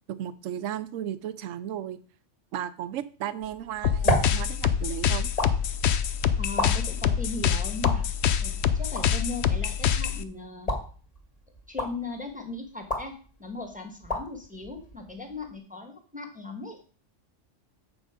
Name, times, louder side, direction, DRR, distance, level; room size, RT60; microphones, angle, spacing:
voice 1, 0.1-2.0 2.5-5.3, right 11 dB, 85° right, 14 dB, 1.0 m, -34 dB
sound 1, 3.4-15.6, left 1 dB, 30° left, 1.9 m, -34 dB
sound 2, 3.8-10.2, left 8 dB, 65° left, 0.9 m, -26 dB
voice 2, 6.4-8.1 8.4-10.7 11.7-16.8, left 3 dB, 5° right, 3 dB, 1.3 m, -38 dB
7.8 x 6.3 x 5.0 m, 0.40 s
omnidirectional pair, 1.3 m